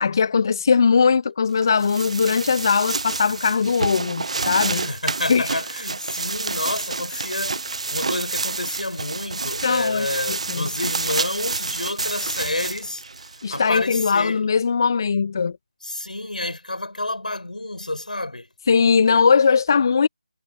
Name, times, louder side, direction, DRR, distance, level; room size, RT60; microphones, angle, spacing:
voice 1, 0.0-4.9 5.3-5.5 7.1-7.2 9.6-10.1 10.5-10.7 13.4-15.6 18.7-20.1, left 5 dB, 30° left, 0.3 m, -20 dB
sound 1, 1.6-14.1, right 3 dB, 50° right, 0.7 m, -29 dB
voice 2, 4.7-14.4 15.8-18.5, left 2 dB, 75° left, 6.0 m, -29 dB
figure-of-eight pair, 160°, 4 cm